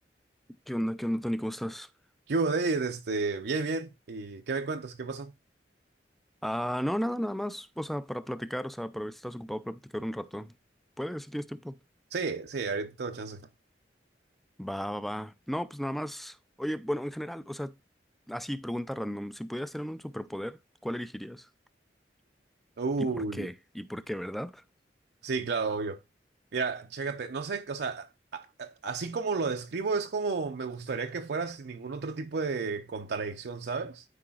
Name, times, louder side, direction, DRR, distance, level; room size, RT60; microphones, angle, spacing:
voice 1, 0.7-1.9 6.4-10.5 11.0-11.8 14.6-17.7 18.3-21.5 23.0-24.6, equal, ahead, 0.3 m, -34 dB
voice 2, 2.3-5.3 12.1-13.4 22.8-23.5 25.2-26.0 26.5-34.0, right 4 dB, 65° right, 0.5 m, -32 dB
12.5 x 4.8 x 2.3 m
head